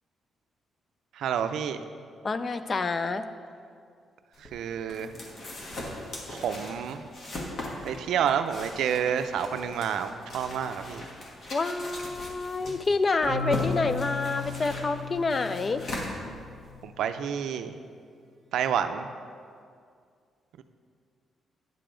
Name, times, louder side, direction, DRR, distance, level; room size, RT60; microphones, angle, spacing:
voice 1, 1.2-1.8 4.5-5.1 6.3-7.0 7.8-11.1 16.8-17.8 18.5-19.1, right 8 dB, 80° right, 9 dB, 0.4 m, -29 dB
voice 2, 2.2-3.2 11.5-15.8, left 3 dB, 30° left, 11 dB, 0.3 m, -28 dB
sound 1, 4.3-16.8, left 1 dB, 45° left, 1.3 m, -39 dB
Marimba xylophone, 13.3-17.1, left 4 dB, 55° right, 1.0 m, -36 dB
9.6 x 6.7 x 3.8 m, 2.2 s
cardioid pair, 145°, 0 cm